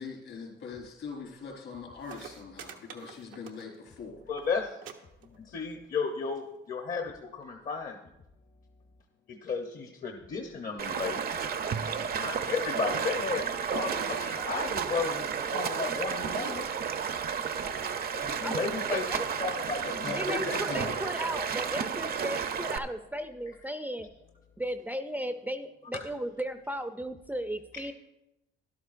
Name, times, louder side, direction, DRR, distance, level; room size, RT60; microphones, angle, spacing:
voice 1, 0.0-4.2 18.1-18.4 19.8-21.0, left 5 dB, 70° left, -1 dB, 3.9 m, -40 dB
sound 1, 1.7-1.8 2.0-3.9 4.2-4.5 4.8-4.9 5.2-5.7 6.5-6.6, right 8 dB, 90° right, 0.9 m, -47 dB
voice 2, 4.3-4.8 5.3-8.0 9.3-11.2 12.2-13.5 13.7-16.7 18.4-19.0 19.4-19.8 25.9-26.0, left 5 dB, 45° left, 3 dB, 0.9 m, -33 dB
Stream, 10.8-22.8, right 7 dB, 50° right, 0.6 m, -32 dB
voice 3, 18.9-19.2 20.0-24.1 24.6-27.9, equal, 10° right, 8 dB, 0.5 m, -35 dB
12.5 x 11.5 x 2.5 m, 0.93 s
cardioid pair, 90°, 20 cm